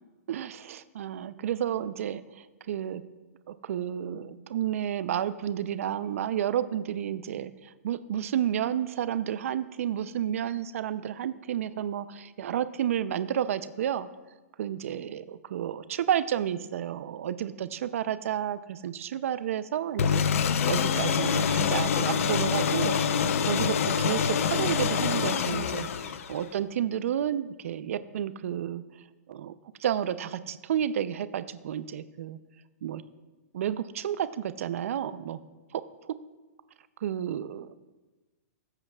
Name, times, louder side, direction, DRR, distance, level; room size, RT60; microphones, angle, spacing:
voice 1, 0.3-2.2 2.7-3.0 3.5-14.1 14.6-20.2 20.7-23.0 23.4-28.8 29.3-29.5 29.8-32.4 32.8-33.0 33.5-35.4 35.7-35.8 37.0-37.7, right 10 dB, 60° right, 13 dB, 0.6 m, -31 dB
sound 1, 20.0-26.5, left 7 dB, 60° left, 0.6 m, -26 dB
20.0 x 8.0 x 2.4 m, 1.2 s
hypercardioid pair, 160°, 9 cm